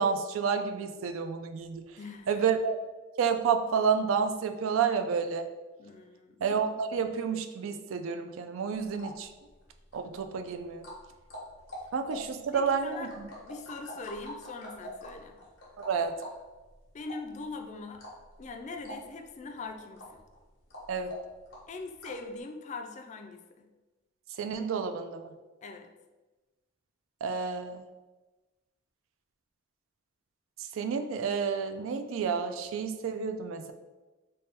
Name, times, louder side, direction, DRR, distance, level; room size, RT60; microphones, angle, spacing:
voice 1, 0.0-1.8 2.3-2.8 3.2-5.5 6.4-9.3 9.9-10.9 11.9-13.1 15.9-16.1 20.9-21.1 24.4-25.3 27.2-27.8 30.7-33.7, right 6 dB, 90° right, 7 dB, 0.4 m, -30 dB
voice 2, 2.0-2.5 5.8-6.4 12.5-13.1 13.4-15.4 16.9-18.0 18.4-20.2 21.7-23.7 25.6-25.9, left 3 dB, 35° left, 4 dB, 0.3 m, -42 dB
click tongue, 8.7-22.3, equal, 85° left, 1.1 m, -47 dB
3.4 x 2.2 x 4.1 m, 1.2 s
head